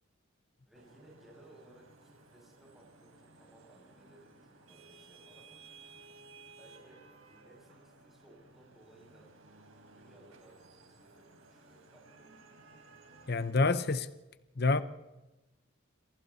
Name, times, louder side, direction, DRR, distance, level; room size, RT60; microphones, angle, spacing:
voice 1, 0.7-5.6 6.6-9.3 9.9-12.3, right 1 dB, ahead, 6.9 m, -61 dB
Vehicle horn car horn honking / Traffic noise roadway noise, 0.7-13.5, right 3 dB, 85° right, 4.2 m, -57 dB
voice 2, 13.3-14.1 14.6-14.8, left 3 dB, 50° left, 0.8 m, -27 dB
29.0 x 27.0 x 4.2 m
head